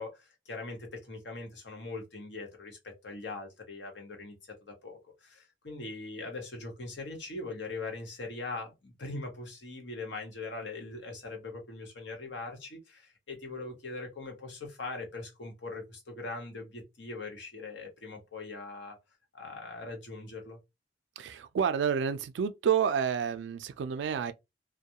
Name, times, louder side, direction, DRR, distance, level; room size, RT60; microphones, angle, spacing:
voice 1, 0.0-4.3 4.8-19.0 19.3-20.6, left 3 dB, 90° left, 1.0 m, -41 dB
voice 2, 21.2-24.3, right 7 dB, 90° right, 0.3 m, -29 dB
2.3 x 2.1 x 2.8 m
head